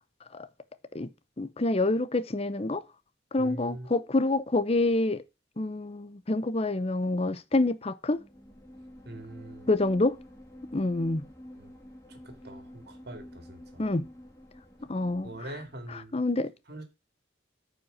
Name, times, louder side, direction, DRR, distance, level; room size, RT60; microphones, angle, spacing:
voice 1, 1.4-2.8 3.3-5.2 5.6-8.2 9.7-10.2 10.7-11.2 13.8-14.0 14.9-15.3 16.1-16.5, left 2 dB, 30° left, 0.7 m, -27 dB
voice 2, 3.4-4.0 9.0-9.7 11.6-11.7 12.1-13.8 15.2-16.1 16.7-16.8, right 1 dB, 55° right, 2.4 m, -43 dB
sound 1, 8.1-16.0, left 1 dB, 15° left, 2.1 m, -49 dB
9.0 x 5.3 x 7.1 m
head